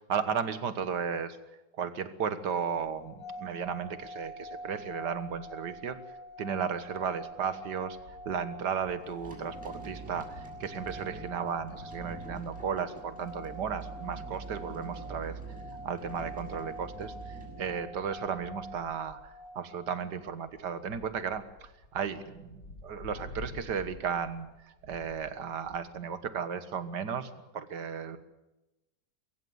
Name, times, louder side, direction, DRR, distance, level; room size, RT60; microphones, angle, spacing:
voice 1, 0.0-1.4 1.7-6.0 6.4-15.4 15.8-28.2, right 7 dB, 80° right, 11 dB, 2.0 m, -35 dB
sound 1, 2.9-20.1, right 1 dB, 35° left, 1.3 m, -46 dB
sound 2, 7.3-9.2 9.5-9.6 9.9-26.2, left 2 dB, 65° left, 5.7 m, -52 dB
sound 3, 9.0-18.5, right 3 dB, 5° right, 6.9 m, -45 dB
23.5 x 15.0 x 9.6 m, 1.0 s
omnidirectional pair, 1.8 m